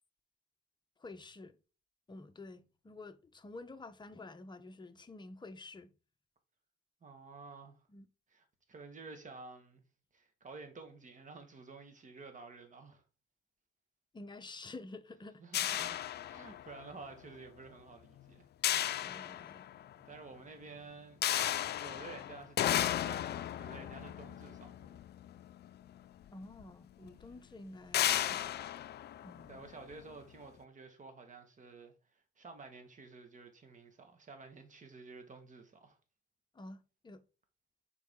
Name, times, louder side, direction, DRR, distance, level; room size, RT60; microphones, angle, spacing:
voice 1, 1.0-1.6 2.1-5.9 7.9-8.1 14.1-15.4 19.0-19.7 26.3-28.6 29.2-29.6 36.5-37.2, left 2 dB, 20° left, 0.8 m, -50 dB
voice 2, 7.0-7.9 8.3-9.8 10.1-13.0 15.4-16.0 16.3-18.5 20.0-21.2 21.8-25.0 29.5-36.0, right 4 dB, 40° right, 1.7 m, -51 dB
sound 1, 15.5-16.9 18.6-19.9 21.2-25.7 26.6-26.7 27.1-27.2 27.9-29.9, left 12 dB, 55° left, 0.4 m, -34 dB
7.0 x 4.8 x 3.7 m
cardioid pair, 90°, 20 cm